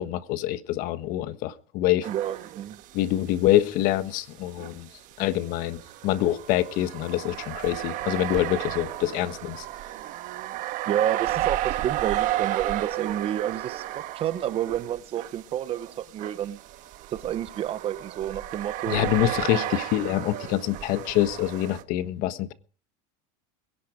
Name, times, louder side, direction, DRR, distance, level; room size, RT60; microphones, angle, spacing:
voice 1, 0.0-2.1 2.9-4.9 5.2-9.6 18.9-22.5, left 13 dB, 55° left, 1.3 m, -25 dB
sound 1, 2.0-3.1 3.4-3.5 4.6-21.8, right 14 dB, 50° right, 1.5 m, -33 dB
voice 2, 2.1-2.8 10.9-16.6 17.1-19.1, right 11 dB, 35° right, 0.9 m, -30 dB
22.0 x 11.0 x 5.1 m
supercardioid pair, 135°, 17 cm